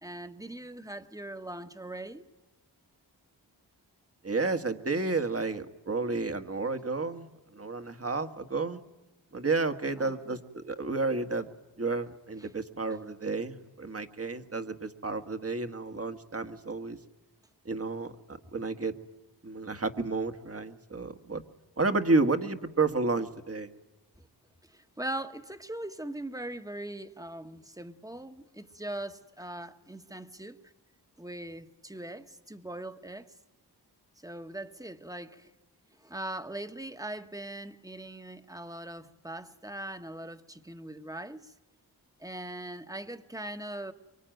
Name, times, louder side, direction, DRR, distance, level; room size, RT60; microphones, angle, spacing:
voice 1, 0.0-2.2 10.0-10.4 12.4-12.5 24.2-24.3 24.7-30.6 31.2-33.3 34.2-35.5 36.0-41.5 42.2-43.9, right 1 dB, 10° right, 1.4 m, -41 dB
voice 2, 4.2-7.3 7.5-8.8 9.3-11.5 11.8-17.0 17.6-18.9 19.4-21.4 21.8-23.7, right 3 dB, 35° right, 1.6 m, -31 dB
24.0 x 24.0 x 9.1 m
wide cardioid pair, 65°, 41 cm